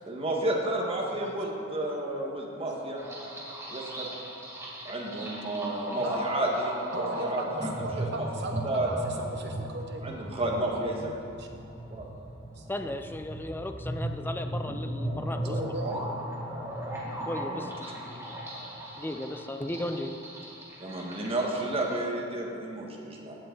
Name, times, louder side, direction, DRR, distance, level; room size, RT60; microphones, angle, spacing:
voice 1, 0.1-3.0 3.7-4.1 4.8-7.7 8.2-8.3 8.6-8.9 10.0-10.9 11.9-12.0 15.9-16.0 17.5-17.7 20.8-23.4, right 1 dB, 30° right, -2 dB, 1.6 m, -31 dB
sound 1, 3.0-22.0, right 1 dB, 15° right, 2.0 m, -37 dB
voice 2, 6.9-10.1 11.4-11.5 12.6-12.7 15.4-16.0, right 2 dB, 60° right, 3 dB, 1.2 m, -37 dB
voice 3, 12.7-15.7 17.3-17.7 18.1-18.3 19.0-20.1, left 1 dB, 10° left, 6 dB, 0.5 m, -35 dB
15.5 x 7.9 x 3.9 m, 2.5 s
head